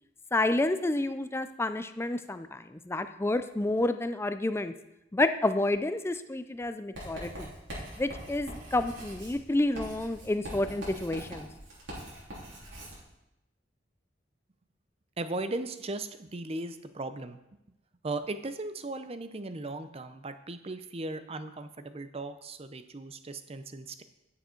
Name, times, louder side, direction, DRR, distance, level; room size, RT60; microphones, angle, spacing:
voice 1, 0.3-4.7 5.1-7.5 8.0-11.5, left 2 dB, 15° left, 10 dB, 0.4 m, -29 dB
Writing, 6.9-13.0, equal, 85° right, 3.5 m, -43 dB
voice 2, 15.2-17.4 18.0-24.0, right 2 dB, 35° right, 11 dB, 0.6 m, -37 dB
9.2 x 7.0 x 4.5 m, 0.90 s
head